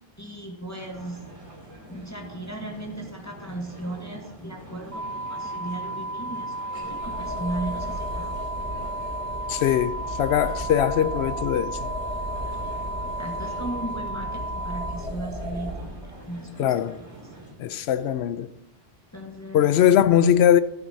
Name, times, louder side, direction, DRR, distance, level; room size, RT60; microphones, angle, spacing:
voice 1, 0.2-1.2 1.9-8.7 12.5-12.7 13.0-17.3 17.8-18.0 19.1-20.0, right 1 dB, 15° left, 1.1 m, -37 dB
sound 1, 0.8-17.5, right 1 dB, 30° right, 2.6 m, -46 dB
sound 2, 4.9-14.9, right 1 dB, 45° left, 2.8 m, -33 dB
sound 3, 6.8-15.9, equal, 55° right, 3.7 m, -35 dB
voice 2, 9.5-11.9 16.6-17.0 17.6-18.5 19.5-20.6, left 10 dB, 75° left, 0.8 m, -21 dB
12.0 x 12.0 x 2.7 m
omnidirectional pair, 1.1 m